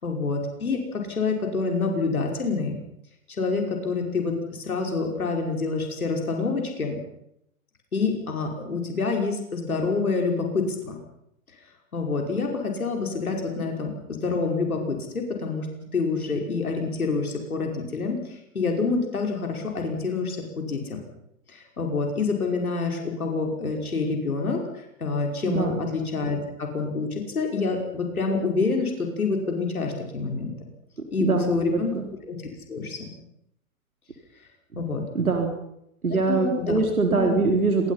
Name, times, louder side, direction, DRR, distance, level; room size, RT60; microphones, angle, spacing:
voice 1, 0.0-2.8 3.4-7.0 7.9-11.0 11.9-15.7 15.9-21.0 21.5-24.6 25.0-30.5 31.1-31.9 32.3-32.4 32.7-33.1 34.8-35.0 36.3-36.8 37.1-37.4, left 4 dB, 85° left, 2 dB, 5.5 m, -27 dB
voice 2, 25.4-25.8 31.2-32.0 34.7-34.8 35.1-35.5 36.0-37.9, right 4 dB, 90° right, 3 dB, 3.9 m, -23 dB
27.0 x 23.5 x 5.8 m, 0.78 s
figure-of-eight pair, 100°, 42 cm